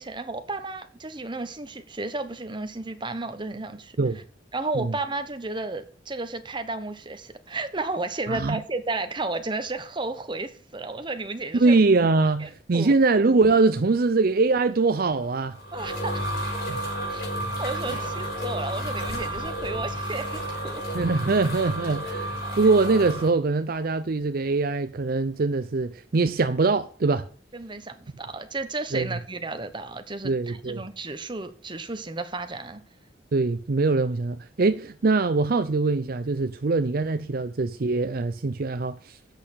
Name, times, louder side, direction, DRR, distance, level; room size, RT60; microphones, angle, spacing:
voice 1, 0.0-4.0 4.5-11.8 12.4-13.0 15.7-16.2 17.1-17.2 17.6-20.8 22.4-22.6 27.5-32.8, right 3 dB, 25° right, 1.1 m, -33 dB
voice 2, 8.3-8.6 11.5-15.5 17.9-18.0 20.9-27.3 28.9-29.1 30.2-30.8 33.3-39.2, right 3 dB, 55° right, 0.6 m, -23 dB
sound 1, 15.3-23.3, right 1 dB, 60° left, 4.8 m, -31 dB
8.1 x 6.6 x 8.2 m
head